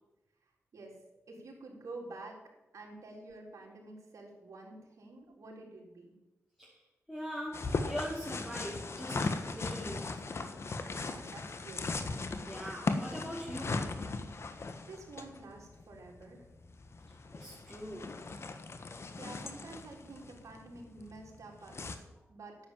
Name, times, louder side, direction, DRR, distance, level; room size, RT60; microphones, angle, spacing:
voice 1, 1.3-2.4 2.7-6.1 10.7-12.4 14.5-16.5 18.7-22.0 22.3-22.6, right 2 dB, 70° right, -1 dB, 3.8 m, -49 dB
voice 2, 7.1-10.2 12.4-13.9 17.3-18.2, equal, 5° left, -8 dB, 4.7 m, -42 dB
sound 1, 7.5-22.0, left 3 dB, 50° left, 1.3 m, -38 dB
10.5 x 8.5 x 7.5 m, 1.0 s
cardioid pair, 60°, 6 cm